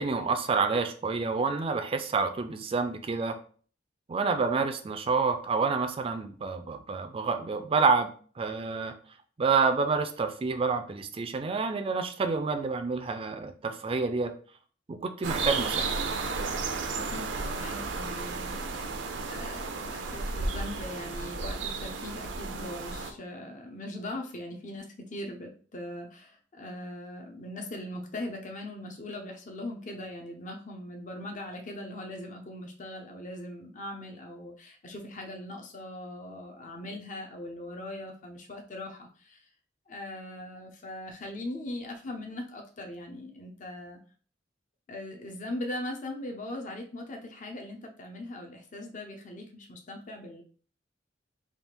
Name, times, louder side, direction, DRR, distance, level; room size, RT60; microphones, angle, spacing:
voice 1, 0.0-3.3 4.1-8.1 8.4-8.9 9.4-14.3 14.9-15.9, right 4 dB, 30° right, 7 dB, 0.4 m, -28 dB
sound 1, 15.2-23.1, right 4 dB, 85° right, 0.5 m, -33 dB
voice 2, 16.9-18.8 19.3-39.5 39.9-44.0 44.9-50.4, left 1 dB, 45° left, 3 dB, 0.6 m, -40 dB
3.5 x 2.4 x 4.3 m, 0.43 s
head